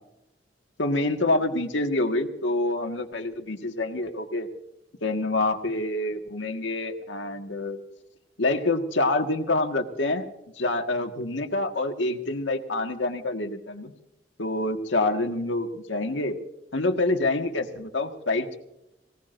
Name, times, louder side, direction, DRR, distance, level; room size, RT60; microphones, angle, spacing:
voice 1, 0.8-4.5 5.0-7.8 8.4-10.3 10.6-13.9 14.4-16.4 16.7-18.6, left 2 dB, 85° left, 5 dB, 1.7 m, -26 dB
24.0 x 17.5 x 2.6 m, 0.86 s
head